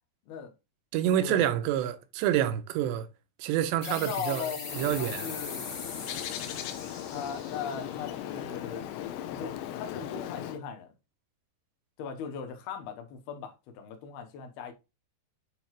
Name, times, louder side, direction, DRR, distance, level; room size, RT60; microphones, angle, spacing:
voice 1, 0.9-3.1 3.4-4.4 4.8-5.3, right 11 dB, 90° right, 2.9 m, -27 dB
sound 1, 3.8-9.1, left 4 dB, 50° left, 1.3 m, -41 dB
voice 2, 3.9-5.7 7.1-8.9 9.3-10.9 12.0-14.7, left 6 dB, 70° left, 2.8 m, -39 dB
Bird, 4.6-10.6, left 11 dB, 90° left, 2.8 m, -38 dB
9.1 x 4.1 x 3.1 m
omnidirectional pair, 5.0 m